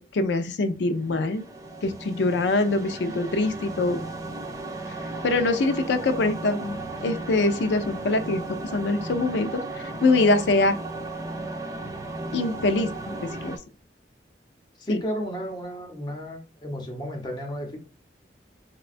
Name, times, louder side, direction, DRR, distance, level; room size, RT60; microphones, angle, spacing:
voice 1, 0.0-1.4 1.8-4.0 5.2-10.8 12.3-13.6 14.9-15.0, left 2 dB, 75° left, 0.4 m, -24 dB
sound 1, 0.9-13.6, right 2 dB, 20° right, 0.4 m, -35 dB
voice 2, 14.8-17.8, equal, 25° left, 0.8 m, -33 dB
4.2 x 2.2 x 2.4 m
head